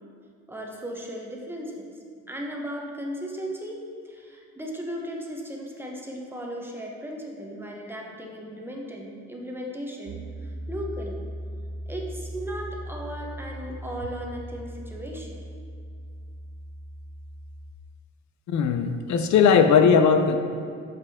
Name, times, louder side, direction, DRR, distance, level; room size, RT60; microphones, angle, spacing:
voice 1, 0.5-1.9 2.3-11.2 11.9-15.4, equal, 5° right, -1 dB, 1.0 m, -36 dB
Piano, 10.1-17.7, right 1 dB, 75° right, 0.7 m, -38 dB
voice 2, 18.5-20.4, left 6 dB, 70° left, 8 dB, 0.6 m, -18 dB
6.6 x 5.1 x 3.6 m, 2.3 s
cardioid pair, 90°, 30 cm